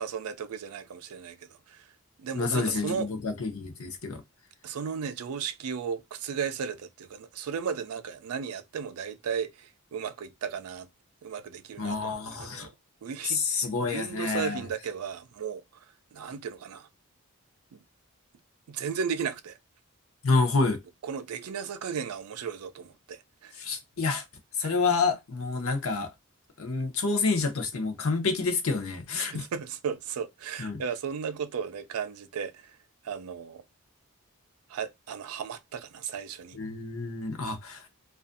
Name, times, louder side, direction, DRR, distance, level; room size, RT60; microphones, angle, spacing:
voice 1, 0.0-1.9 2.2-3.1 4.6-10.9 11.2-12.7 13.0-15.9 16.1-16.9 17.7-17.8 18.7-19.6 21.0-23.5 24.6-24.7 29.2-32.8 33.0-33.6 34.7-36.6, right 6 dB, 80° right, 0.4 m, -35 dB
voice 2, 2.3-4.2 11.8-12.7 13.2-14.6 20.2-20.8 23.6-24.2 24.6-26.1 26.6-29.4 30.6-30.8 36.6-37.9, left 4 dB, 70° left, 0.7 m, -28 dB
2.5 x 2.3 x 2.5 m
head